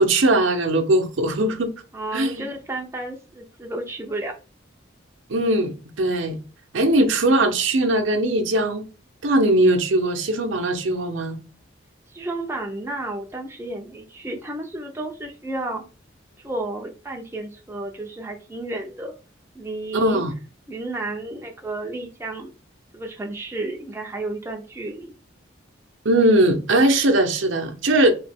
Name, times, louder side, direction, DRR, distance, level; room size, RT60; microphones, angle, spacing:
voice 1, 0.0-1.7 2.1-2.4 5.3-6.4 6.7-8.9 9.2-11.4 19.9-20.3 26.0-28.1, right 1 dB, 70° right, 0.7 m, -20 dB
voice 2, 1.9-4.3 12.1-15.8 16.4-19.1 19.5-20.2 20.7-22.5 22.9-25.1, right 2 dB, 15° right, 0.4 m, -32 dB
3.1 x 2.8 x 3.4 m
head